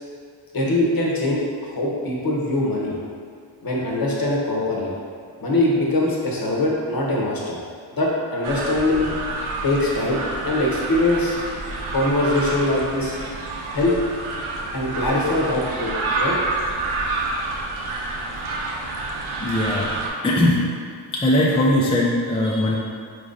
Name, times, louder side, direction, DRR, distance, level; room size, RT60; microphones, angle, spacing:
voice 1, 0.5-1.4 1.7-3.0 3.6-4.9 5.4-7.6 7.9-9.1 9.6-11.4 11.9-13.2 13.7-13.9 14.7-16.4, left 1 dB, 45° left, -3 dB, 0.9 m, -22 dB
sound 1, 8.4-20.1, right 2 dB, 80° right, 0.6 m, -28 dB
voice 2, 19.4-19.9 20.2-20.6 21.1-22.8, left 1 dB, 10° left, -4 dB, 0.5 m, -19 dB
3.8 x 3.0 x 2.5 m, 2.1 s
cardioid pair, 40°, 49 cm